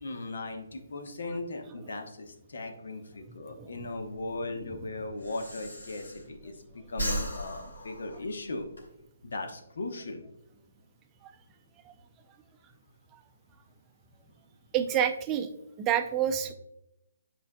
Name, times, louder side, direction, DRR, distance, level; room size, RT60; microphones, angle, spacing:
voice 1, 0.0-6.6 6.9-8.7 9.2-10.3, left 2 dB, 65° left, 5 dB, 1.2 m, -38 dB
Breathing, 3.8-6.6 6.9-8.8, equal, 85° left, 2.5 m, -37 dB
voice 2, 14.7-15.5 15.8-16.5, right 9 dB, 20° right, 7 dB, 0.6 m, -28 dB
10.5 x 4.5 x 2.3 m, 0.85 s
figure-of-eight pair, 140°, 0 cm